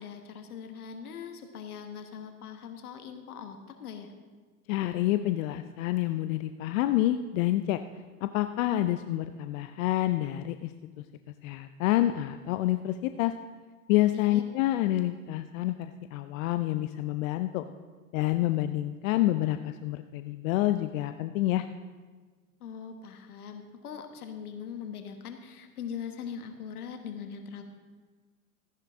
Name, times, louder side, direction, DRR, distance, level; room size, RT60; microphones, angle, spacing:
voice 1, 0.0-4.1 14.1-14.4 22.6-27.6, left 7 dB, 80° left, 6 dB, 1.5 m, -41 dB
voice 2, 4.7-7.8 8.2-10.7 11.4-13.3 13.9-17.6 18.1-21.7, left 15 dB, 65° left, 10 dB, 0.6 m, -28 dB
14.0 x 10.5 x 3.6 m, 1.4 s
hypercardioid pair, 90°, 44 cm